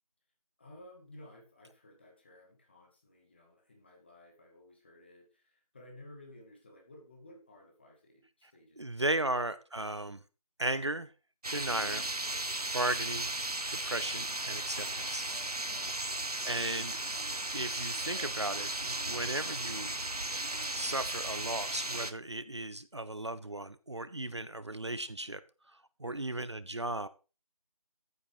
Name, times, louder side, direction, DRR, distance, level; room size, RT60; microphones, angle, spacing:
voice 1, 0.6-9.3 15.8-16.2 26.0-26.3, left 1 dB, 20° left, 1 dB, 2.4 m, -56 dB
voice 2, 8.8-10.2 10.6-11.1 11.5-12.1 12.7-13.3 13.7-15.2 16.4-17.0 17.5-19.9 20.7-25.4 25.7-27.1, right 2 dB, 50° right, 14 dB, 0.8 m, -36 dB
sound 1, 11.4-22.1, right 2 dB, 85° right, 1.4 m, -36 dB
14.5 x 8.0 x 4.9 m, 0.33 s
figure-of-eight pair, 170°, 19 cm